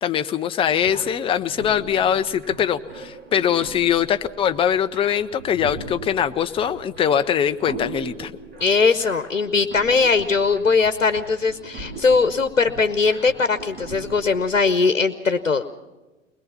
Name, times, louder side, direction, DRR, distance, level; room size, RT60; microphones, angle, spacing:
voice 1, 0.0-8.3, left 9 dB, 15° left, 9 dB, 0.6 m, -22 dB
sound 1, 0.8-14.6, right 3 dB, 25° right, 3.7 m, -40 dB
voice 2, 8.6-15.6, left 4 dB, 85° left, 11 dB, 1.0 m, -20 dB
21.5 x 21.0 x 5.8 m, 1.1 s
figure-of-eight pair, 95°, 38 cm